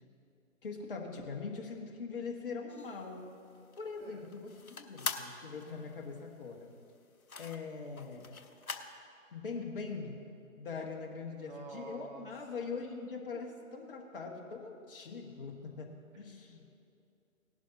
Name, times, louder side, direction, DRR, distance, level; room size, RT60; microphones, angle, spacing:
voice 1, 0.6-3.3 3.8-6.7 7.4-8.3 9.3-10.2 10.5-16.6, left 4 dB, 40° left, 0 dB, 1.6 m, -42 dB
sound 1, 2.7-9.0, left 4 dB, 85° left, 0.9 m, -44 dB
voice 2, 11.2-12.3 16.5-16.8, right 3 dB, 35° right, 0 dB, 1.6 m, -49 dB
18.0 x 11.5 x 2.8 m, 2.6 s
figure-of-eight pair, 145°, 41 cm